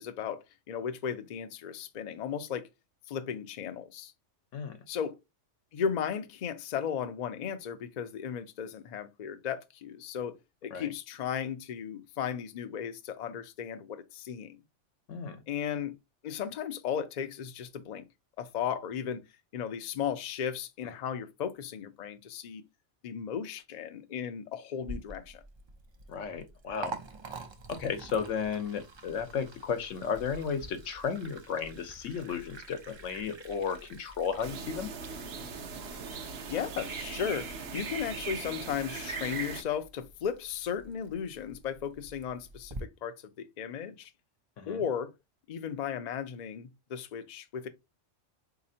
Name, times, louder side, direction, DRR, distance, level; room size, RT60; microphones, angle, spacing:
voice 1, 0.0-2.7 3.1-4.1 4.9-5.2 5.7-14.6 15.5-15.9 16.2-18.0 18.4-19.2 19.5-22.6 23.0-25.4 36.1-44.1 44.7-45.1 45.5-47.7, left 8 dB, 55° left, 0.5 m, -35 dB
Liquid, 24.8-42.8, right 3 dB, 45° right, 0.3 m, -48 dB
voice 2, 26.1-27.0 27.7-34.9 44.6-44.8, left 6 dB, 85° left, 1.1 m, -34 dB
sound 1, 34.4-39.6, right 5 dB, 65° right, 0.9 m, -39 dB
4.1 x 2.9 x 2.6 m
omnidirectional pair, 1.2 m